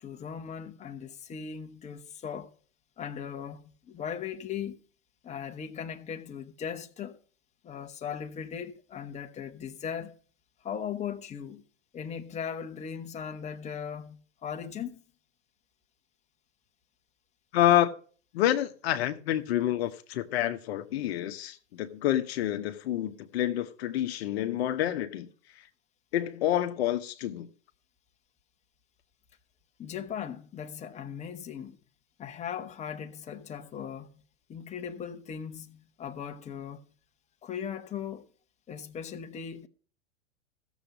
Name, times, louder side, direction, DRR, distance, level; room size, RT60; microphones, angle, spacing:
voice 1, 0.0-2.5 3.0-4.8 5.2-7.2 7.6-10.2 10.6-11.6 11.9-15.0 29.8-31.8 32.2-34.1 34.5-36.8 37.4-38.3 38.7-39.7, left 8 dB, 20° left, 1.1 m, -38 dB
voice 2, 17.5-17.9 18.3-25.3 26.1-27.5, left 12 dB, 55° left, 1.0 m, -28 dB
14.5 x 7.2 x 5.2 m
hypercardioid pair, 115°, 36 cm